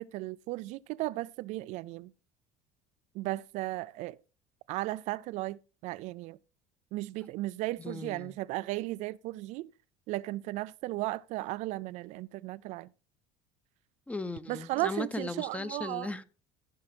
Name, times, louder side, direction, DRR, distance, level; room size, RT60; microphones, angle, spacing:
voice 1, 0.0-2.1 3.1-4.2 4.7-6.4 6.9-9.7 10.1-12.9 14.5-16.1, right 18 dB, 65° right, 0.4 m, -35 dB
voice 2, 7.8-8.4 14.1-16.2, left 2 dB, 10° left, 0.9 m, -37 dB
15.5 x 5.5 x 4.4 m
supercardioid pair, 110°, 13 cm